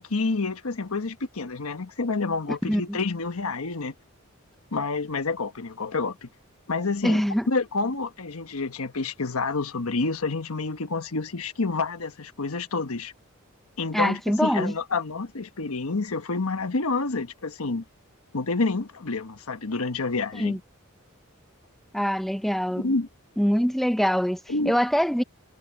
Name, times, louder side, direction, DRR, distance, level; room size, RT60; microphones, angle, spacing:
voice 1, 0.0-3.9 4.7-6.3 6.7-7.2 7.5-13.1 13.8-17.8 18.3-20.6 22.8-23.1 24.5-24.8, left 3 dB, 85° left, 1.2 m, -28 dB
voice 2, 2.6-3.0 7.0-7.5 13.9-14.7 20.4-20.6 21.9-22.9 23.4-24.4 24.6-25.2, equal, ahead, 0.8 m, -24 dB
head